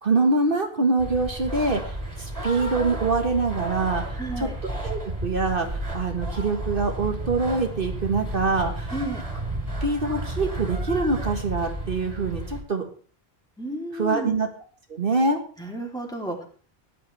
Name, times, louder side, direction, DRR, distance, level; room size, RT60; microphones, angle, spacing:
voice 1, 0.0-4.5 4.8-8.9 9.8-12.8 13.9-14.5 14.9-15.4, right 3 dB, 60° right, 4 dB, 1.7 m, -25 dB
sound 1, 1.0-12.6, right 1 dB, 35° right, 3.3 m, -32 dB
voice 2, 4.2-4.5 8.9-9.2 13.6-14.4 15.6-16.4, right 1 dB, 5° left, 0 dB, 3.0 m, -32 dB
17.0 x 10.5 x 3.3 m, 0.43 s
omnidirectional pair, 1.1 m